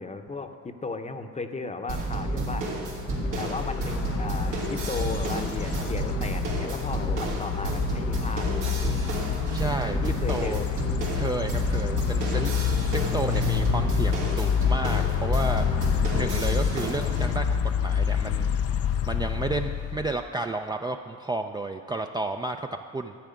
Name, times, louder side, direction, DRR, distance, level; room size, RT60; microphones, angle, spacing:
voice 1, 0.0-2.7 3.2-9.1 9.8-10.9, left 3 dB, 20° left, 7 dB, 0.8 m, -35 dB
sound 1, 1.9-17.2, right 2 dB, 90° right, 2.7 m, -31 dB
sound 2, 2.6-20.2, left 8 dB, 50° left, 0.5 m, -28 dB
voice 2, 9.5-10.6 11.1-12.6 12.9-15.6 16.1-18.5 19.1-23.2, right 2 dB, 15° right, 4 dB, 0.4 m, -32 dB
13.0 x 4.8 x 8.8 m, 2.3 s
cardioid pair, 90°, 30 cm